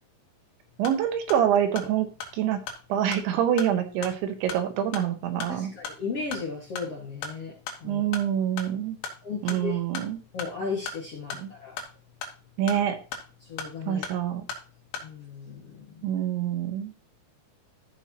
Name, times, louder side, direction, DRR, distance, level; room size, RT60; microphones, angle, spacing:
sound 1, 0.6-15.1, left 5 dB, 85° left, 4.1 m, -41 dB
voice 1, 0.8-2.1 2.3-2.6 2.9-5.7 7.8-9.0 9.4-10.2 11.4-11.5 12.6-13.0 13.9-14.4 16.0-16.9, right 10 dB, 80° right, 6 dB, 3.5 m, -26 dB
voice 2, 5.5-8.0 9.2-9.8 10.3-11.8 13.5-14.0 15.0-16.1, left 5 dB, 50° left, -3 dB, 1.9 m, -35 dB
14.5 x 5.8 x 3.0 m, 0.34 s
omnidirectional pair, 5.4 m